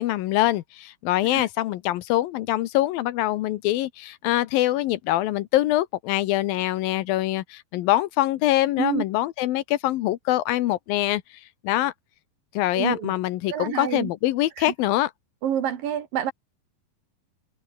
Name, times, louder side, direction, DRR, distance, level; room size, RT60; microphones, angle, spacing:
voice 1, 0.0-11.2 11.6-11.9 12.5-15.1, left 15 dB, 80° left, 2.6 m, -24 dB
voice 2, 12.8-13.1 13.5-14.1 14.6-14.7 15.4-16.3, right 9 dB, 70° right, 3.7 m, -27 dB
omnidirectional pair, 4.3 m